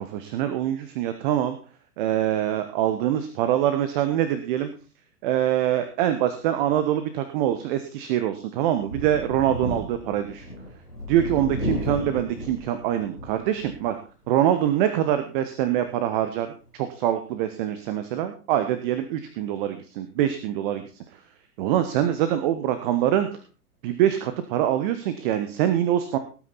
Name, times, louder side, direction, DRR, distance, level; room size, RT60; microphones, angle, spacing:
voice 1, 0.0-1.6 2.0-4.7 5.2-10.5 11.1-14.0 14.3-16.5 16.7-20.8 21.6-23.3 23.8-26.2, right 11 dB, 35° right, 9 dB, 1.3 m, -24 dB
Thunder, 8.8-13.9 14.3-14.4 15.8-15.9, left 1 dB, 90° left, 3.4 m, -33 dB
18.5 x 9.0 x 4.2 m, 0.36 s
figure-of-eight pair, 105°, 45 cm